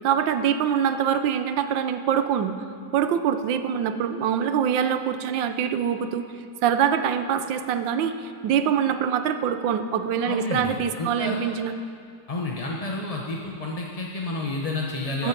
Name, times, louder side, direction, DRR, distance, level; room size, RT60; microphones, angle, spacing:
voice 1, 0.0-2.6 2.9-6.3 6.6-11.7 15.2-15.3, right 8 dB, 85° right, 9 dB, 1.4 m, -24 dB
voice 2, 10.3-11.4 12.3-15.3, left 2 dB, 30° left, -1 dB, 0.6 m, -30 dB
12.5 x 8.8 x 7.2 m, 2.3 s
omnidirectional pair, 2.0 m